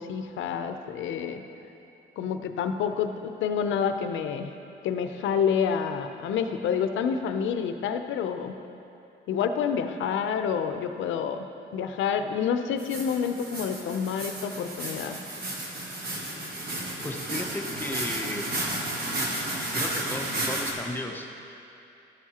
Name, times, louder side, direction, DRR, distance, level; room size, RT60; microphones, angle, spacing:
voice 1, 0.0-1.4 2.2-4.5 4.8-8.5 9.3-11.5 11.7-15.2, left 7 dB, 75° left, 8 dB, 0.6 m, -28 dB
sound 1, 12.8-20.7, right 1 dB, 50° right, 1.4 m, -32 dB
voice 2, 17.0-18.5 19.7-21.4, left 2 dB, 10° left, 3 dB, 0.7 m, -35 dB
12.0 x 7.3 x 2.9 m, 2.8 s
cardioid pair, 90°, 20 cm